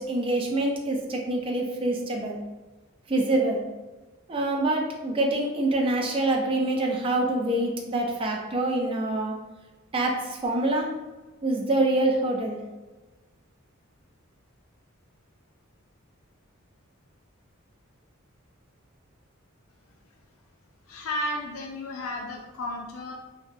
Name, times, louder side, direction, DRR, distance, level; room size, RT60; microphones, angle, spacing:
voice 1, 0.0-2.4 3.1-3.7 4.3-9.3 9.9-11.0 11.4-12.6, right 2 dB, 25° right, 0 dB, 0.4 m, -25 dB
voice 2, 20.9-23.1, left 1 dB, 85° left, 0 dB, 0.4 m, -33 dB
3.7 x 2.1 x 2.6 m, 1.2 s
head